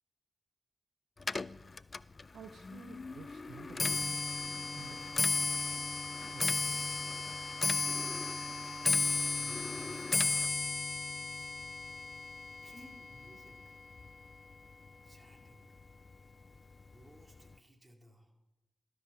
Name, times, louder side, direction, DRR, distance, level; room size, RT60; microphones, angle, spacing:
Clock, 1.2-14.5 14.9-15.3 16.1-16.2 16.6-16.9 17.2-17.3, left 4 dB, 45° left, 0.3 m, -34 dB
voice 1, 2.3-4.5 4.7-5.6 6.3-6.9, right 7 dB, 80° right, 10 dB, 0.4 m, -53 dB
voice 2, 7.2-8.1 9.4-11.5 12.6-13.8 15.0-15.8 16.9-18.3, right 1 dB, 30° right, 2 dB, 2.3 m, -60 dB
12.5 x 4.7 x 6.6 m, 0.96 s
cardioid pair, 45°, 0 cm